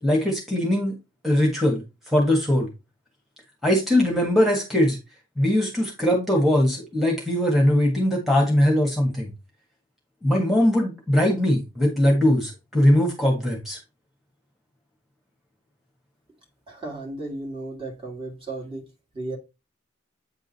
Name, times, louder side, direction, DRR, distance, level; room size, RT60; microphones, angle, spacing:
voice 1, 0.0-0.9 1.2-2.7 3.6-5.0 5.4-9.3 10.2-13.8, left 1 dB, ahead, 1.5 m, -21 dB
voice 2, 16.7-19.4, right 2 dB, 25° right, 1.9 m, -35 dB
8.6 x 3.7 x 4.1 m
head